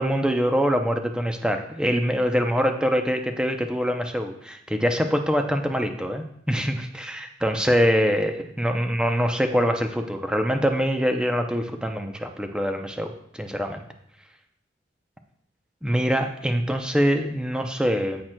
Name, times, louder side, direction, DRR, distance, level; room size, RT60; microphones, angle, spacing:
voice 1, 0.0-13.9 15.8-18.2, equal, 5° right, 5 dB, 0.5 m, -24 dB
15.0 x 6.0 x 2.2 m, 0.73 s
head